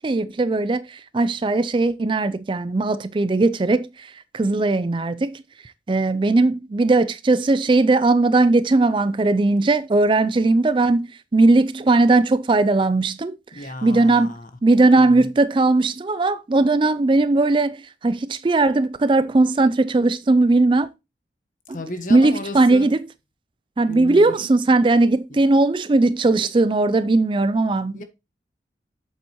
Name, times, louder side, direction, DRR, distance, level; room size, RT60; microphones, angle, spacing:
voice 1, 0.0-5.4 5.9-14.3 14.6-20.9 22.1-23.0 23.8-28.0, right 2 dB, 25° right, 0.4 m, -18 dB
voice 2, 13.5-14.5 15.0-15.3 21.7-22.9 23.9-24.3 25.3-25.4 27.9-28.0, left 2 dB, 45° left, 1.3 m, -34 dB
8.0 x 7.9 x 3.0 m
head